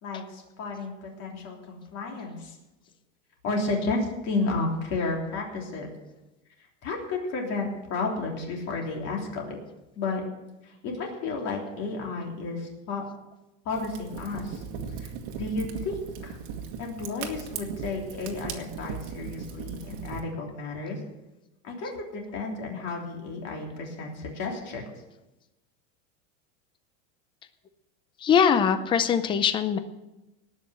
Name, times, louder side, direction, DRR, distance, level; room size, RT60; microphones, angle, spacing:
voice 1, 0.0-2.6 3.4-5.9 6.8-9.6 9.9-10.2 10.6-13.0 13.6-14.6 15.0-16.4 16.8-21.0 21.6-24.8, left 3 dB, 40° left, 0 dB, 3.3 m, -32 dB
Fire, 13.7-20.2, right 7 dB, 45° right, 1.7 m, -38 dB
voice 2, 28.2-29.8, left 7 dB, 15° left, 10 dB, 0.5 m, -22 dB
18.5 x 6.3 x 7.7 m, 0.98 s
supercardioid pair, 160°, 39 cm